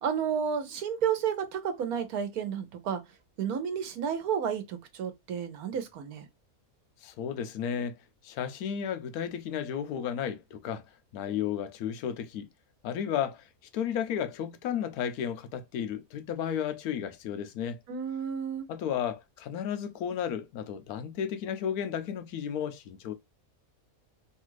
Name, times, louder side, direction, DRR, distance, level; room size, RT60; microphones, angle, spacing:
voice 1, 0.0-3.0 3.4-6.3 17.9-18.7, right 7 dB, 80° right, 1.3 m, -31 dB
voice 2, 7.0-8.0 8.2-10.8 11.1-12.5 12.8-13.5 13.7-17.8 18.7-23.1, left 8 dB, 85° left, 1.1 m, -33 dB
3.3 x 2.4 x 3.0 m
omnidirectional pair, 1.5 m